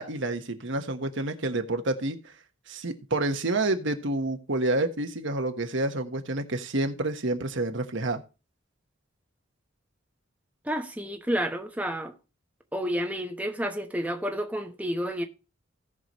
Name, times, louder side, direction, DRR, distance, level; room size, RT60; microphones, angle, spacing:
voice 1, 0.0-2.3 2.7-8.2, right 2 dB, 65° right, 1.3 m, -29 dB
voice 2, 10.6-12.1 12.7-15.3, equal, 5° right, 1.0 m, -30 dB
17.5 x 6.1 x 3.1 m
head